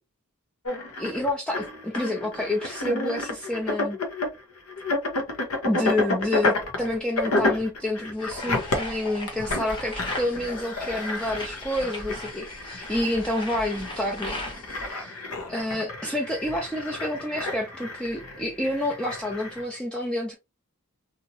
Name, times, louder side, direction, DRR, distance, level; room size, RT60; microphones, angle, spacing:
sound 1, 0.7-19.6, left 2 dB, 70° left, 0.9 m, -31 dB
voice 1, 1.0-4.0 5.6-14.4 14.8-15.2 15.5-20.3, left 1 dB, 5° left, 0.4 m, -29 dB
sound 2, 8.2-14.9, left 1 dB, 20° left, 0.9 m, -38 dB
2.9 x 2.6 x 2.7 m
head